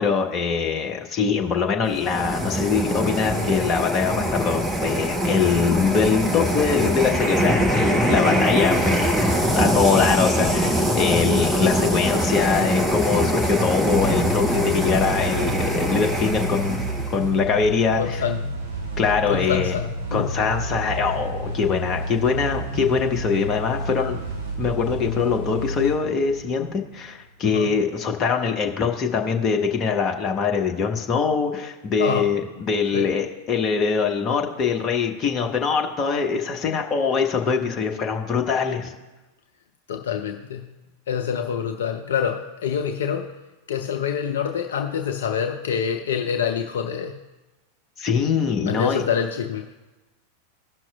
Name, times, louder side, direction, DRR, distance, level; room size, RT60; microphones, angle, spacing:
voice 1, 0.0-18.2 19.0-19.8 20.1-24.2 24.6-38.9 48.0-49.0, left 5 dB, 30° left, 2 dB, 1.0 m, -23 dB
sound 1, 1.9-17.3, equal, 10° right, 1.0 m, -23 dB
sound 2, 13.9-27.2, right 1 dB, 60° right, 2.5 m, -31 dB
voice 2, 18.0-18.6 19.3-20.3 27.4-27.7 32.0-32.3 32.9-33.1 39.9-40.7 41.1-43.3 43.7-47.2 48.7-49.7, left 7 dB, 60° left, 5 dB, 0.5 m, -26 dB
17.0 x 6.0 x 2.3 m, 1.1 s
figure-of-eight pair, 90°, 0 cm